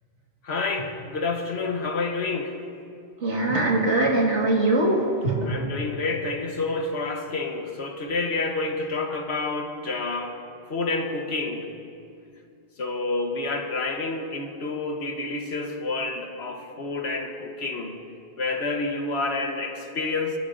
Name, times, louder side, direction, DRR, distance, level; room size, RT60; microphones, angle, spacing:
voice 1, 0.4-2.6 5.4-10.4 10.7-11.7 12.8-18.0 18.4-20.4, left 3 dB, 70° left, 4 dB, 1.4 m, -29 dB
voice 2, 3.2-5.5, right 2 dB, 90° right, -1 dB, 2.1 m, -22 dB
29.0 x 11.0 x 2.6 m, 2.4 s
omnidirectional pair, 1.2 m